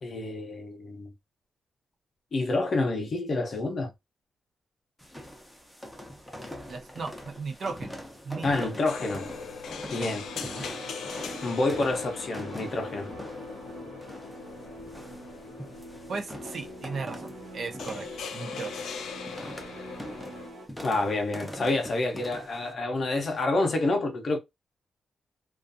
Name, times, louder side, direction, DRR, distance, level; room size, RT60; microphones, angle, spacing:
voice 1, 0.0-1.1 2.3-3.9 8.4-9.3 9.9-10.2 11.4-13.1 20.8-24.4, left 2 dB, 40° left, 0.6 m, -28 dB
sound 1, 5.0-22.7, equal, ahead, 0.6 m, -43 dB
voice 2, 6.7-8.0 8.2-8.7 10.0-10.1 16.1-18.1 18.3-18.7, right 4 dB, 50° right, 0.6 m, -36 dB
sound 2, 8.8-20.5, left 6 dB, 85° left, 0.3 m, -41 dB
sound 3, 9.9-20.7, right 1 dB, 90° right, 0.7 m, -45 dB
2.5 x 2.3 x 2.5 m
wide cardioid pair, 145°, 0 cm